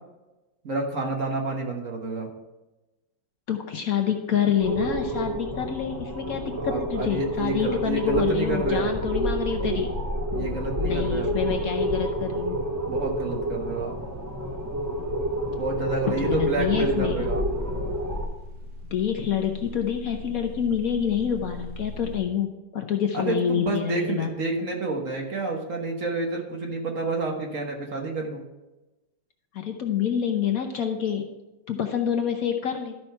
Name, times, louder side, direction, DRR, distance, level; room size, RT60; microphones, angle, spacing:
voice 1, 0.6-2.3 6.6-8.9 10.3-11.3 12.9-13.9 15.6-17.5 23.1-28.4, right 3 dB, 50° right, 1 dB, 1.6 m, -29 dB
voice 2, 3.5-9.9 10.8-12.6 16.1-17.3 18.9-24.3 29.5-31.3 31.7-33.0, left 8 dB, 60° left, 4 dB, 1.1 m, -27 dB
sound 1, 4.6-18.3, right 1 dB, 15° right, 0.7 m, -28 dB
sound 2, 5.5-5.8 6.1-22.2, left 1 dB, 80° right, 1.9 m, -44 dB
13.0 x 5.5 x 4.4 m, 1.0 s
omnidirectional pair, 1.9 m